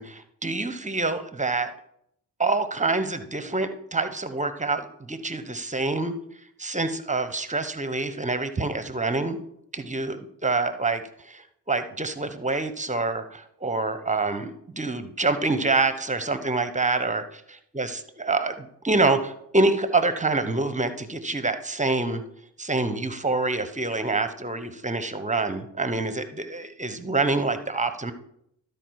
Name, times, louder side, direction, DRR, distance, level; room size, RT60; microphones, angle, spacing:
voice 1, 0.0-1.7 2.4-6.1 6.6-9.4 9.7-11.4 11.7-17.2 17.7-22.2 22.6-28.1, right 3 dB, 20° right, 10 dB, 1.1 m, -26 dB
12.0 x 4.9 x 4.8 m, 0.72 s
supercardioid pair, 50°, 40 cm